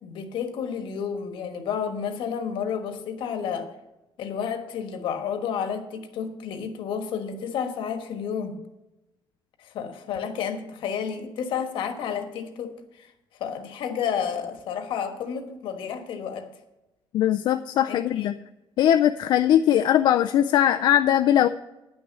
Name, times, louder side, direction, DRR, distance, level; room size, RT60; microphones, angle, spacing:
voice 1, 0.0-3.7 4.2-8.6 9.6-12.7 13.0-13.1 13.4-16.5 17.9-18.4, left 7 dB, 75° left, 7 dB, 1.3 m, -31 dB
voice 2, 17.1-18.3 18.8-21.5, left 11 dB, 60° left, 8 dB, 0.4 m, -20 dB
9.9 x 6.2 x 7.5 m, 0.97 s
cardioid pair, 180°, 9 cm